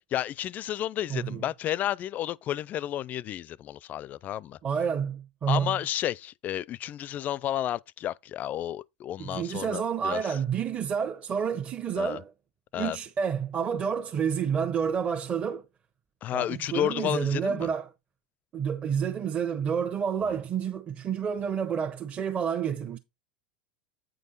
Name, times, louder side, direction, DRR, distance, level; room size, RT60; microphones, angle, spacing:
voice 1, 0.1-4.6 5.5-10.4 12.0-12.2 12.7-13.0 16.2-17.7, left 12 dB, 40° left, 0.4 m, -31 dB
voice 2, 1.1-1.4 4.6-5.8 9.2-12.3 12.8-15.6 16.3-17.9 18.5-23.0, right 7 dB, 30° right, 1.1 m, -29 dB
8.9 x 5.3 x 4.1 m
hypercardioid pair, 95°, 4 cm